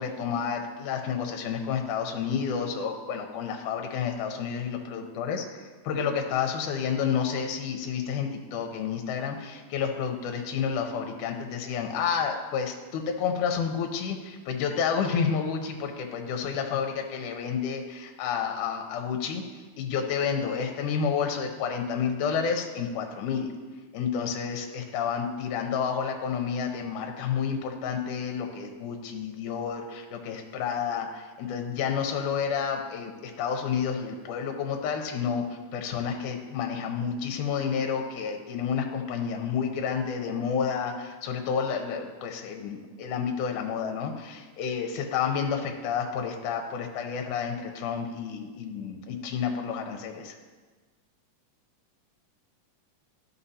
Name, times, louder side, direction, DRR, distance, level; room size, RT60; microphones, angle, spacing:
voice 1, 0.0-5.4 5.8-19.4 19.8-23.5 23.9-50.3, left 6 dB, 75° left, 4 dB, 2.1 m, -30 dB
13.0 x 5.6 x 2.8 m, 1.4 s
omnidirectional pair, 3.8 m